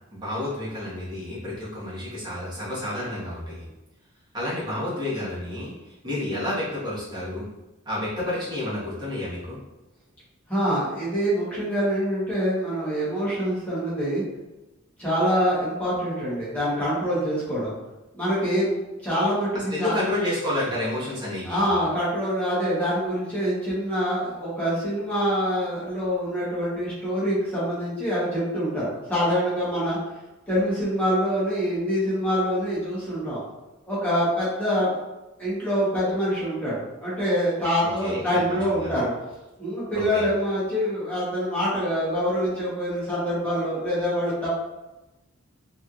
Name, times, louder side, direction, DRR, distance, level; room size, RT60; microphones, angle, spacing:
voice 1, 0.1-3.7 4.3-7.5 7.8-9.6 19.5-21.7 38.0-38.9 39.9-40.2, left 1 dB, 20° right, -10 dB, 1.2 m, -30 dB
voice 2, 10.5-14.2 15.0-17.7 18.1-18.7 19.0-19.9 21.4-30.0 30.5-33.4 33.9-34.9 35.4-39.1 39.6-44.5, equal, 5° left, -10 dB, 1.1 m, -25 dB
3.2 x 2.8 x 2.4 m, 1.0 s
head